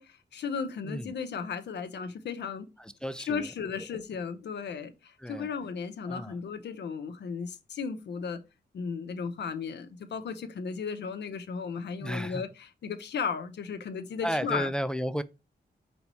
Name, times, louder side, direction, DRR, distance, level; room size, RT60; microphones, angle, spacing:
voice 1, 0.0-2.7 3.3-8.4 8.7-14.7, left 6 dB, 85° left, 0.6 m, -35 dB
voice 2, 2.8-3.5 5.2-5.5 6.1-6.4 12.0-12.4 14.2-15.2, equal, 5° left, 0.3 m, -33 dB
4.0 x 3.5 x 3.0 m
cardioid pair, 65°, 18 cm